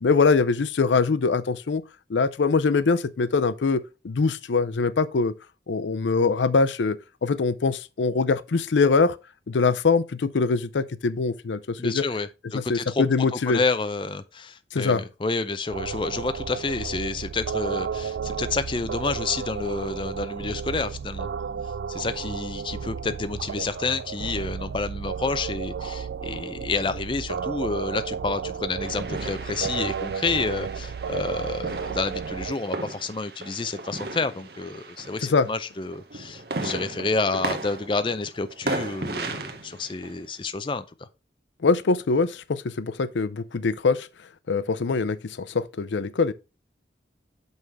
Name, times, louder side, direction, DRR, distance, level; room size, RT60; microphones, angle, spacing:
voice 1, 0.0-1.8 2.1-5.3 5.7-9.2 9.5-12.0 12.5-13.6 14.7-15.0 35.2-35.5 41.6-44.1 44.5-46.3, left 4 dB, 85° left, 0.5 m, -23 dB
voice 2, 11.8-13.0 13.3-21.3 21.9-40.8, left 3 dB, 25° left, 0.4 m, -29 dB
sound 1, 15.7-32.6, right 6 dB, 85° right, 0.3 m, -33 dB
sound 2, 28.8-35.6 35.9-40.3, right 2 dB, 60° right, 1.0 m, -35 dB
6.2 x 5.5 x 4.5 m
head